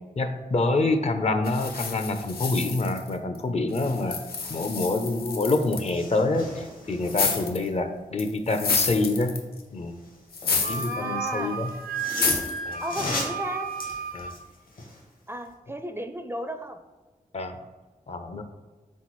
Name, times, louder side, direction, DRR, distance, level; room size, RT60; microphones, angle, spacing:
voice 1, 0.2-4.2 4.5-9.3 9.7-10.0 10.7-11.7 12.7-12.8 14.1-14.3 17.3-17.6 18.1-18.4, left 2 dB, 45° left, 8 dB, 0.5 m, -26 dB
sound 1, 1.5-3.4 3.7-5.9 7.1-7.7 8.2-9.6 10.3-11.0 11.3-11.4 12.1-12.6, left 5 dB, 85° left, 0.6 m, -29 dB
sound 2, 5.1-5.2 5.4-7.7 9.8-10.9 11.7-15.0 15.5-15.6, left 2 dB, 65° left, 1.1 m, -37 dB
voice 2, 10.5-11.6 12.8-13.7 15.3-16.8, right 1 dB, 15° right, 7 dB, 0.4 m, -34 dB
Wind instrument woodwind instrument, 10.6-14.4, right 5 dB, 75° right, 0.4 m, -33 dB
4.2 x 3.6 x 3.1 m, 1.3 s
cardioid pair, 40°, 15 cm